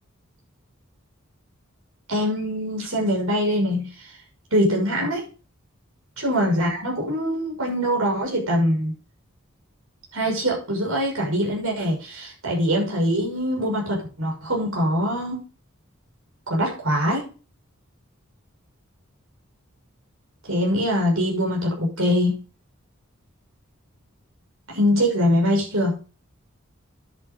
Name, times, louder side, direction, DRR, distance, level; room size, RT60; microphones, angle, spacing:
voice 1, 2.1-4.1 4.5-5.2 6.2-8.9 10.1-15.4 16.5-17.3 20.5-22.3 24.7-25.9, equal, 85° right, -1 dB, 6.3 m, -23 dB
11.5 x 10.5 x 3.9 m, 0.36 s
head